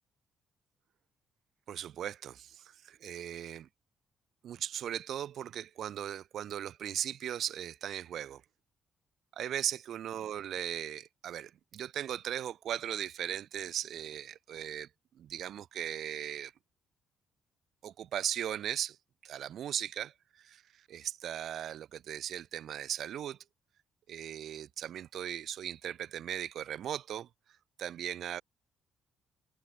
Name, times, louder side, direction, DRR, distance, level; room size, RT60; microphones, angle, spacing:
voice 1, 1.7-3.7 4.4-8.4 9.3-14.9 15.1-16.5 17.8-19.0 19.2-20.1 20.4-23.4 24.1-27.3 27.8-28.4, right 10 dB, 70° right, 5.4 m, -38 dB
cardioid pair, 90°, 0 cm